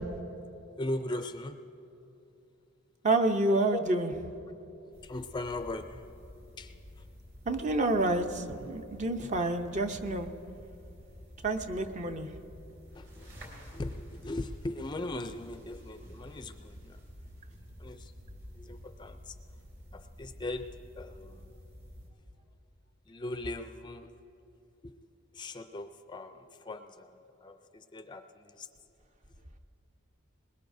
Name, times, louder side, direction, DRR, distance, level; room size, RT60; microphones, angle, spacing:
voice 1, 0.8-1.6 3.7-3.8 5.0-6.1 6.6-7.1 12.9-13.3 13.7-17.0 17.8-18.1 18.5-19.4 19.9-21.5 23.1-24.1 24.8-28.7, left 2 dB, 20° left, 8 dB, 0.4 m, -39 dB
voice 2, 3.0-4.1 7.5-10.3 11.4-12.3, right 2 dB, 35° right, 6 dB, 0.7 m, -28 dB
sound 1, 4.9-22.1, equal, 50° right, 4.4 m, -50 dB
21.5 x 21.0 x 2.7 m, 2.8 s
head